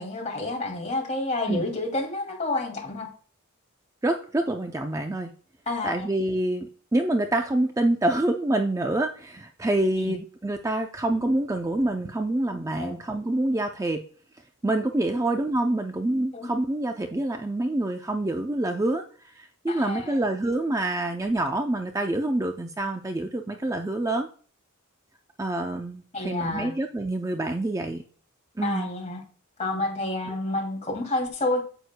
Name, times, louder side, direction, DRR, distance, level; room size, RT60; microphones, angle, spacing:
voice 1, 0.0-3.1 5.7-6.1 10.0-10.2 12.7-13.0 16.3-16.5 19.7-20.2 26.1-26.7 28.6-29.2 29.6-31.6, left 2 dB, 35° left, 1 dB, 2.5 m, -29 dB
voice 2, 4.0-5.3 5.8-14.0 14.6-19.0 19.4-24.3 25.4-28.0 28.6-28.9 30.3-30.4, right 1 dB, 15° right, 4 dB, 0.5 m, -26 dB
9.2 x 8.0 x 2.2 m, 0.43 s
head